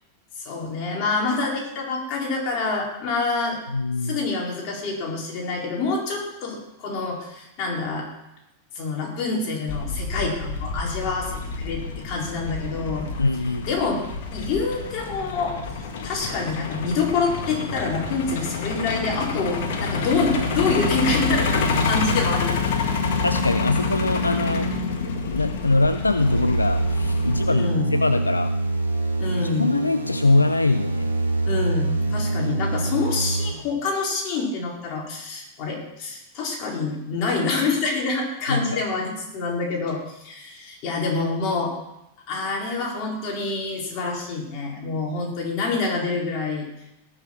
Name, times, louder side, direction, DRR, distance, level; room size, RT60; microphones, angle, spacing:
voice 1, 0.4-3.6 4.0-8.1 8.7-13.1 13.7-14.0 14.3-15.6 16.0-22.5 27.5-27.9 29.2-29.8 31.5-41.7 42.3-46.7, left 3 dB, 40° left, -2 dB, 4.6 m, -26 dB
voice 2, 3.7-4.2 13.2-13.7 23.2-24.7 25.3-28.5 29.4-31.1 38.5-38.9, left 2 dB, 80° left, 11 dB, 0.4 m, -23 dB
Truck, 9.7-27.5, left 4 dB, 55° left, 1.9 m, -27 dB
sound 1, 26.2-33.5, right 2 dB, 85° right, 2.1 m, -25 dB
18.0 x 7.1 x 6.0 m, 0.88 s
figure-of-eight pair, 90°, 0 cm